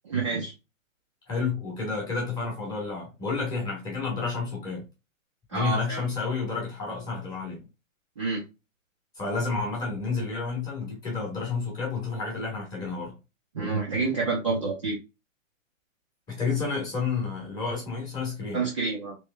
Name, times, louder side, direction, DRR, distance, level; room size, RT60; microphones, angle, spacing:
voice 1, 0.1-0.5 5.5-6.0 8.2-8.4 13.5-15.0 18.5-19.2, right 4 dB, 25° right, 0.5 m, -28 dB
voice 2, 1.3-4.8 5.5-7.7 9.2-13.2 16.3-18.6, left 4 dB, 10° left, 1.1 m, -30 dB
3.2 x 3.0 x 3.3 m
hypercardioid pair, 155°, 41 cm